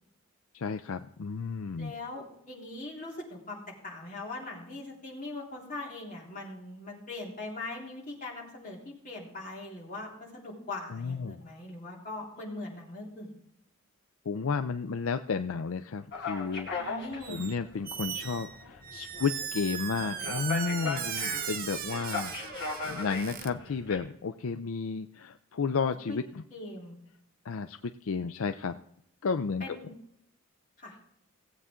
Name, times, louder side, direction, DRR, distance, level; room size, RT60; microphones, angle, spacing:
voice 1, 0.5-1.9 10.9-11.4 14.3-16.7 17.3-26.2 27.4-28.8 29.2-29.8, left 5 dB, 65° left, 9 dB, 0.5 m, -32 dB
voice 2, 1.8-13.3 16.7-17.4 26.1-26.2 26.5-27.0 29.6-29.9 30.8-31.0, left 2 dB, 35° left, -3 dB, 3.6 m, -41 dB
sound 1, 16.1-24.0, left 4 dB, 50° left, 2.3 m, -38 dB
Squeak, 17.2-17.6 17.8-23.5, right 8 dB, 40° right, 0.7 m, -38 dB
17.5 x 8.1 x 3.7 m, 0.73 s
head